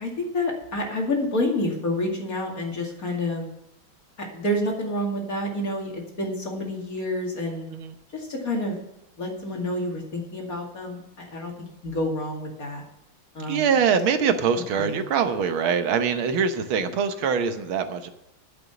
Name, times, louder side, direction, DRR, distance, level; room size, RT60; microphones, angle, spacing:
voice 1, 0.0-3.4 4.2-7.7 8.1-8.8 9.2-11.5 11.8-12.8 13.3-13.6 14.8-14.9, left 1 dB, 45° left, 0 dB, 2.8 m, -28 dB
voice 2, 13.5-18.1, right 6 dB, 85° right, 8 dB, 1.8 m, -23 dB
11.5 x 8.1 x 7.0 m, 0.87 s
omnidirectional pair, 2.2 m